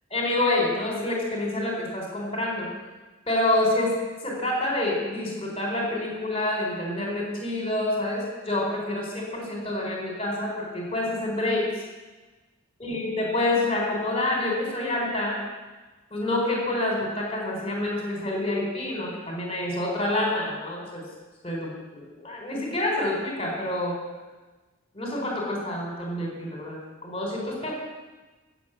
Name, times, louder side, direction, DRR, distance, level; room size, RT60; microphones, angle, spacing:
voice 1, 0.1-2.7 3.3-4.0 4.2-11.7 12.8-15.4 16.1-21.0 21.4-24.0 24.9-27.7, left 1 dB, 25° left, -1 dB, 4.1 m, -27 dB
15.5 x 7.6 x 8.0 m, 1.2 s
head